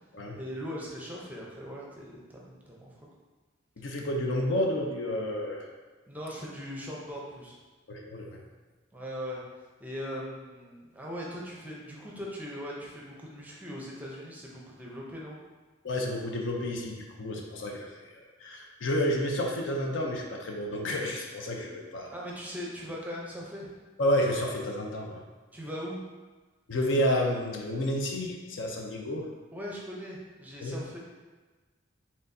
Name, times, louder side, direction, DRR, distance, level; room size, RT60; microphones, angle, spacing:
voice 1, 0.4-3.0 6.1-7.6 8.9-9.4 9.8-15.4 22.1-23.7 25.5-26.0 29.5-31.0, equal, 10° right, -4 dB, 0.6 m, -40 dB
voice 2, 3.8-5.7 7.9-8.4 15.8-22.1 24.0-25.2 26.7-29.3 30.6-30.8, equal, 65° left, 1 dB, 0.6 m, -30 dB
4.4 x 3.6 x 2.6 m, 1.3 s
head